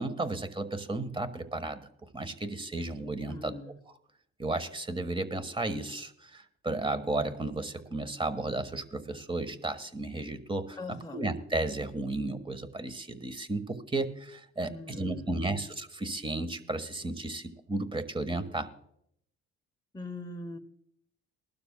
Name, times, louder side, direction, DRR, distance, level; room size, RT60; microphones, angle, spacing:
voice 1, 0.0-1.8 2.1-3.5 4.4-18.7, right 2 dB, 15° right, 10 dB, 1.3 m, -33 dB
voice 2, 3.3-3.8 10.8-11.2 14.6-15.6 19.9-20.6, left 2 dB, 10° left, 3 dB, 0.9 m, -42 dB
20.5 x 12.0 x 2.2 m, 0.72 s
cardioid pair, 75°, 31 cm